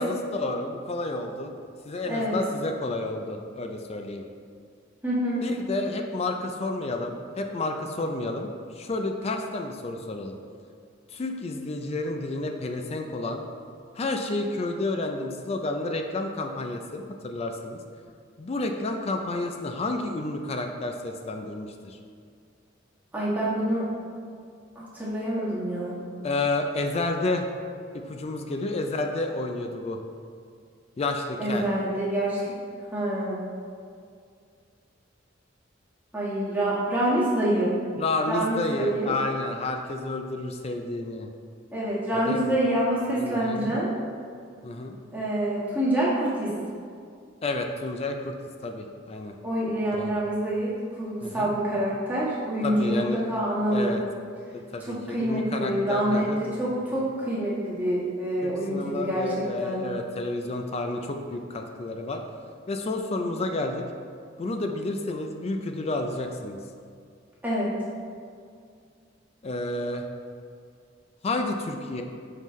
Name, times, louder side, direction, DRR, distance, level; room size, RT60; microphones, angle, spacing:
voice 1, 0.0-1.5 1.9-4.2 5.4-10.4 11.1-13.4 13.9-17.8 18.4-22.0 26.2-27.5 27.9-30.0 31.0-31.7 38.0-41.3 42.1-42.6 43.2-43.8 44.6-45.0 47.4-48.4 48.6-49.3 49.9-50.1 51.2-51.5 52.6-53.2 53.7-54.0 54.5-56.5 58.4-62.2 62.7-63.9 64.4-66.6 69.4-70.0 71.2-72.0, left 2 dB, 35° left, 4 dB, 0.4 m, -30 dB
voice 2, 2.1-2.4 5.0-5.4 23.1-23.9 24.7-26.0 31.4-32.5 32.9-33.4 36.1-37.7 38.3-39.2 41.7-43.9 45.1-46.5 49.4-54.0 54.9-59.8 67.4-67.7, right 1 dB, 10° right, -9 dB, 1.4 m, -26 dB
5.6 x 5.5 x 3.1 m, 2.2 s
head